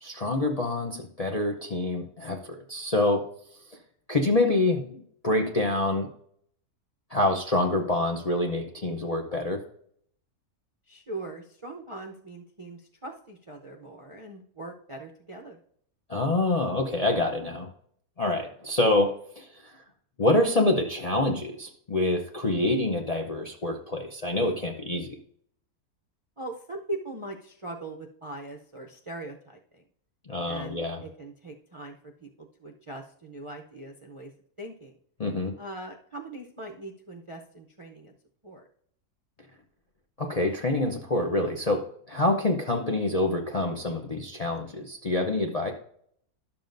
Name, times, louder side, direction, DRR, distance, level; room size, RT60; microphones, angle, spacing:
voice 1, 0.0-3.2 4.1-6.1 7.1-9.6 16.1-17.7 18.2-19.8 20.2-25.2 30.3-31.0 35.2-35.5 40.2-45.7, left 2 dB, 45° left, 3 dB, 0.4 m, -26 dB
voice 2, 10.9-15.6 26.4-29.8 30.4-30.8 31.2-31.9 32.2-32.3 32.6-34.3 34.6-34.9 35.6-38.1 38.4-38.7, right 2 dB, 45° right, 0 dB, 0.4 m, -40 dB
12.0 x 7.1 x 2.6 m, 0.65 s
omnidirectional pair, 1.6 m